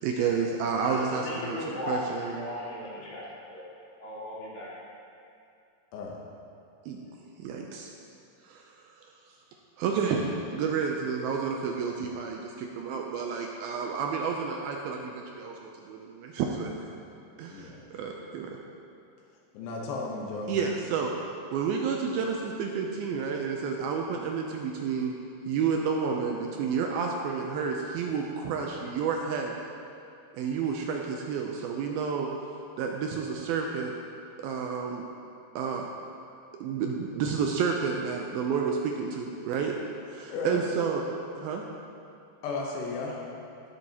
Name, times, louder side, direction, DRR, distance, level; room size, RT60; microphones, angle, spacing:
voice 1, 0.0-2.4 6.9-7.0 7.4-7.9 8.4-9.0 9.8-16.7 17.4-18.6 20.5-21.2 21.5-25.1 25.5-29.6 30.3-32.3 32.8-33.9 34.4-35.0 35.6-35.9 36.6-39.7 40.1-41.0 41.4-41.6, right 6 dB, 80° right, 1 dB, 2.3 m, -30 dB
voice 2, 0.8-3.2 3.5-3.7 4.0-4.7, left 1 dB, 65° left, -9 dB, 4.4 m, -37 dB
voice 3, 17.5-17.8 19.5-20.6 40.3-40.6 42.4-43.2, left 3 dB, 85° left, -2 dB, 3.2 m, -34 dB
17.5 x 7.8 x 2.9 m, 2.6 s
omnidirectional pair, 4.8 m